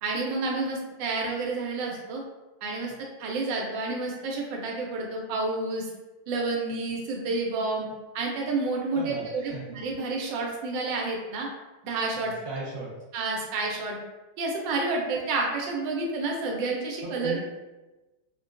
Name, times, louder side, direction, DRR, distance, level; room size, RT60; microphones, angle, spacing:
voice 1, 0.0-2.2 2.6-2.9 3.2-5.9 6.3-7.9 8.1-11.5 11.8-12.3 13.1-14.0 14.4-17.4, right 3 dB, 85° right, 0 dB, 1.4 m, -29 dB
voice 2, 8.9-9.6 12.1-12.9 17.0-17.4, right 3 dB, 65° right, -5 dB, 1.3 m, -37 dB
3.8 x 2.2 x 2.4 m, 1.1 s
omnidirectional pair, 2.0 m